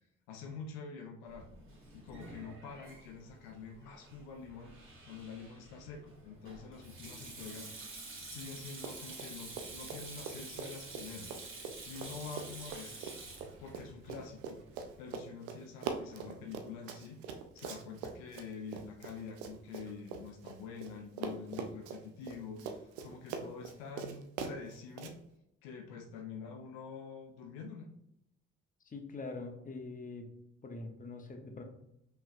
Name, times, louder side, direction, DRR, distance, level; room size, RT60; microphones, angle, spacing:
voice 1, 0.3-1.5 1.9-4.7 5.1-11.4 11.6-13.2 13.6-14.6 15.0-25.2 25.6-27.9, left 5 dB, 70° left, 4 dB, 0.6 m, -47 dB
Sink (filling or washing), 1.3-15.0, right 2 dB, 35° right, 1.7 m, -49 dB
Run, 8.7-9.3 9.5-20.9 21.2-25.1, right 6 dB, 75° right, 0.5 m, -42 dB
voice 2, 28.8-30.3 30.6-31.6, left 3 dB, 25° left, 4 dB, 0.9 m, -43 dB
5.6 x 3.1 x 2.5 m, 0.80 s
figure-of-eight pair, 40°, 34 cm